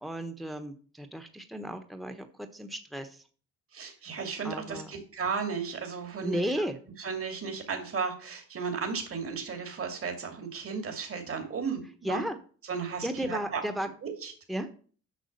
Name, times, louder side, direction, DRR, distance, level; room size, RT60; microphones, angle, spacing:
voice 1, 0.0-2.3 2.5-3.2 4.4-4.9 6.2-6.8 12.0-12.4 13.0-13.9 14.5-14.7, right 1 dB, ahead, 6 dB, 1.1 m, -34 dB
voice 2, 3.7-6.7 7.0-12.2 12.6-13.6 14.0-14.3, right 5 dB, 45° right, 5 dB, 2.4 m, -34 dB
8.2 x 6.2 x 6.5 m, 0.43 s
cardioid pair, 90°, 30 cm